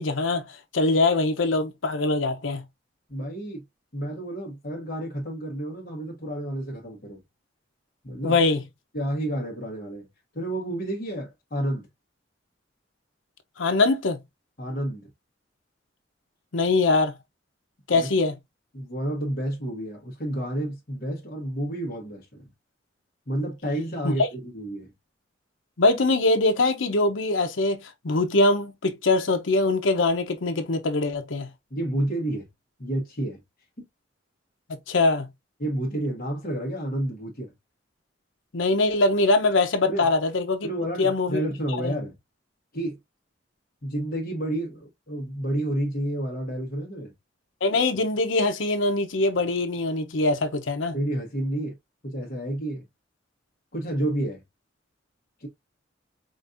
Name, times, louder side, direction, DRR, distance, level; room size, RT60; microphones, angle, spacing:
voice 1, 0.0-2.6 8.2-8.6 13.6-14.2 16.5-17.1 17.9-18.3 24.0-24.1 25.8-31.5 34.9-35.3 38.5-40.7 41.0-41.4 41.8-42.0 47.6-51.0, left 2 dB, 85° left, 0.8 m, -23 dB
voice 2, 3.1-3.6 3.9-7.2 8.0-8.4 8.9-10.1 10.3-11.9 14.6-15.1 17.9-18.1 18.7-22.5 23.3-24.9 31.7-32.5 32.8-33.4 33.8-33.9 35.6-37.5 39.9-40.1 40.6-42.1 42.7-43.0 43.8-47.1 50.9-51.7 52.0-52.8 53.7-54.4 55.4-55.5, right 1 dB, 45° left, 1.2 m, -30 dB
5.1 x 2.5 x 2.5 m
head